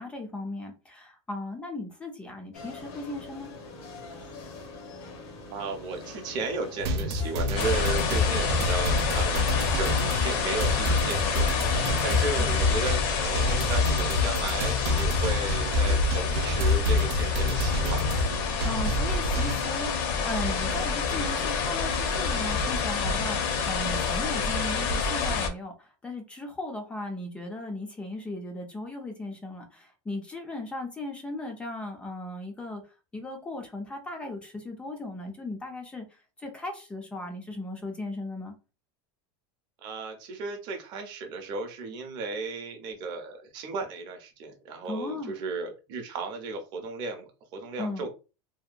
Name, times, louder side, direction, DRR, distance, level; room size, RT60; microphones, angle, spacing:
voice 1, 0.0-3.5 18.6-32.8 33.1-36.1 36.4-38.5 44.9-45.3 47.8-48.1, left 2 dB, 10° left, 4 dB, 0.3 m, -37 dB
sound 1, 2.5-12.3, left 3 dB, 85° left, 0.8 m, -43 dB
voice 2, 5.5-18.3 39.8-48.1, right 3 dB, 35° right, 4 dB, 0.6 m, -35 dB
sound 2, 6.8-19.5, left 2 dB, 75° right, 0.6 m, -28 dB
sound 3, 7.6-25.5, left 4 dB, 55° left, 0.6 m, -28 dB
2.7 x 2.2 x 2.4 m, 0.31 s
supercardioid pair, 180°, 14 cm